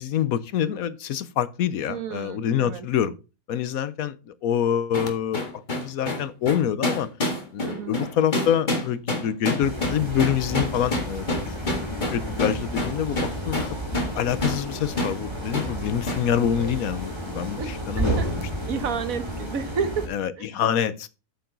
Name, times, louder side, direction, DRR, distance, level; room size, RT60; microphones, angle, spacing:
voice 1, 0.0-3.2 3.5-5.4 5.7-7.1 7.5-11.6 12.1-13.6 14.1-18.5 20.1-21.1, left 9 dB, 70° left, 1.1 m, -26 dB
voice 2, 1.9-2.9 7.6-8.0 17.6-17.7 17.9-18.3 18.7-20.1 20.4-20.5, right 6 dB, 60° right, 1.5 m, -30 dB
sound 1, 4.9-14.2 14.4-14.6 15.0-15.2 15.5-15.7 16.1-16.3, left 1 dB, 30° left, 1.9 m, -27 dB
sound 2, 9.6-20.1, right 1 dB, 15° right, 2.4 m, -32 dB
9.0 x 7.0 x 3.8 m
omnidirectional pair, 1.7 m